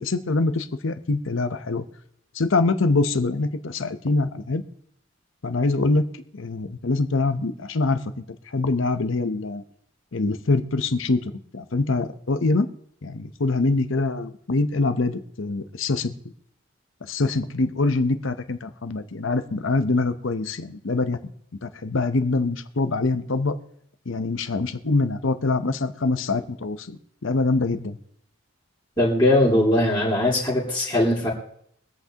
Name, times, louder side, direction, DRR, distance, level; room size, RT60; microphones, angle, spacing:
voice 1, 0.0-1.8 2.3-4.6 5.4-6.0 6.3-8.0 8.5-9.6 10.1-11.2 11.5-12.7 13.0-16.1 17.1-21.2 21.6-23.6 24.1-28.0, left 3 dB, 65° left, 10 dB, 0.8 m, -24 dB
voice 2, 29.0-31.3, left 1 dB, 20° left, -4 dB, 2.4 m, -20 dB
24.0 x 8.1 x 2.9 m, 0.69 s
head